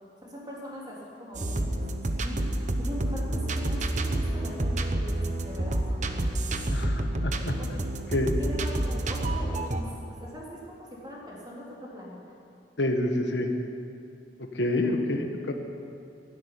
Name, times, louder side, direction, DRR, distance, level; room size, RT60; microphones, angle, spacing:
voice 1, 0.2-6.3 7.6-7.8 8.4-12.2, equal, 25° right, -4 dB, 3.6 m, -41 dB
sound 1, 1.3-9.8, right 1 dB, 40° right, 0.9 m, -29 dB
voice 2, 6.7-7.5 8.1-8.3 12.8-13.5 14.4-15.5, left 1 dB, 75° left, 4 dB, 1.4 m, -28 dB
12.0 x 11.5 x 9.9 m, 2.5 s
head